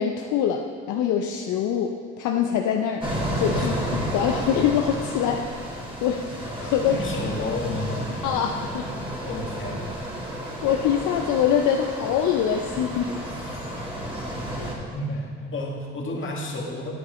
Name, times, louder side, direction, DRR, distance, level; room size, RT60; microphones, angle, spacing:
voice 1, 0.0-5.4 5.7-7.0 8.2-8.9 10.6-13.2 14.5-14.7, left 8 dB, 70° left, 3 dB, 0.6 m, -24 dB
sound 1, 3.0-14.7, equal, 15° right, 2.2 m, -31 dB
voice 2, 3.5-4.1 6.8-8.1 9.3-10.2 13.2-13.7 14.9-16.9, left 1 dB, 40° left, -2 dB, 1.8 m, -32 dB
9.5 x 8.3 x 3.1 m, 2.1 s
supercardioid pair, 65°, 31 cm